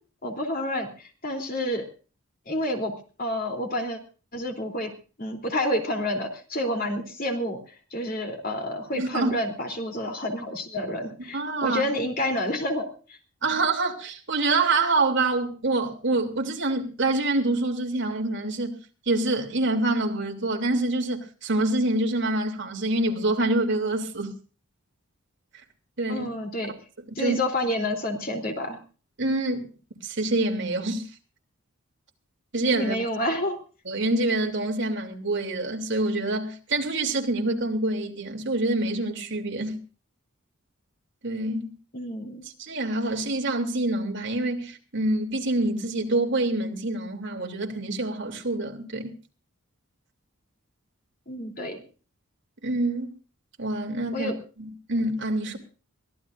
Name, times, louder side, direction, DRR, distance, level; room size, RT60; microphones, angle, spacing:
voice 1, 0.2-1.8 2.5-2.9 3.2-4.0 4.3-4.9 5.2-12.9 26.1-26.7 27.1-28.8 32.7-33.6 41.9-42.5 51.3-51.8 54.1-54.3, left 1 dB, 40° left, 3.4 m, -29 dB
voice 2, 8.9-9.3 11.3-11.8 13.4-18.8 19.1-24.3 26.0-26.3 27.2-27.4 29.2-29.6 30.0-31.1 32.5-32.9 33.8-39.8 41.2-41.7 42.6-49.1 52.6-53.1 53.6-54.3 54.6-55.6, right 2 dB, 55° right, 3.2 m, -26 dB
23.5 x 16.5 x 2.6 m
head